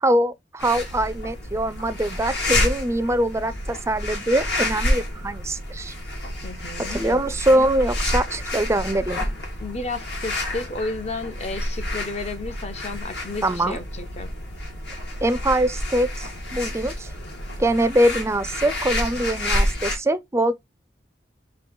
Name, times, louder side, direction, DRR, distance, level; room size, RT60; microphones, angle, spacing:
voice 1, 0.0-5.9 6.9-9.3 13.4-13.8 15.2-17.1 17.6-20.6, right 1 dB, 15° right, 0.4 m, -23 dB
sound 1, 0.6-20.0, left 1 dB, 75° left, 1.7 m, -29 dB
voice 2, 6.4-7.0 9.6-14.3, left 3 dB, 40° left, 0.6 m, -32 dB
3.8 x 3.7 x 3.7 m
head